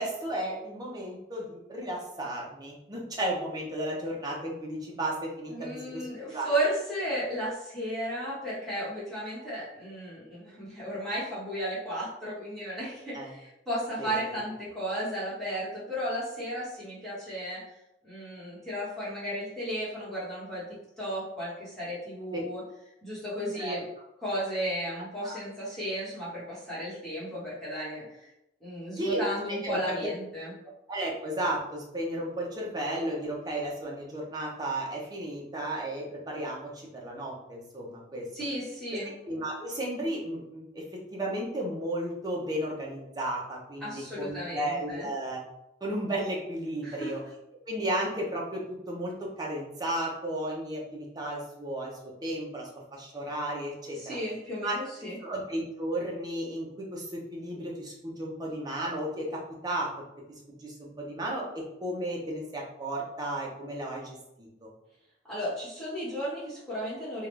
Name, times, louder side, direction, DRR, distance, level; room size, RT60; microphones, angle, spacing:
voice 1, 0.0-6.5 13.1-13.3 14.0-14.1 22.3-22.5 23.5-23.8 25.2-25.4 29.0-29.2 29.6-30.0 30.9-38.3 39.0-40.8 41.1-45.4 45.8-47.2 47.7-54.1 54.6-54.7 55.2-59.9 60.5-64.7, right 1 dB, 20° right, -3 dB, 0.8 m, -34 dB
voice 2, 5.5-17.6 18.0-20.6 21.0-22.6 23.0-23.8 24.2-28.3 28.6-30.5 38.3-39.1 43.8-45.1 46.8-47.1 53.9-55.2 65.3-67.3, equal, ahead, -11 dB, 1.4 m, -34 dB
3.7 x 2.4 x 3.3 m, 0.86 s
head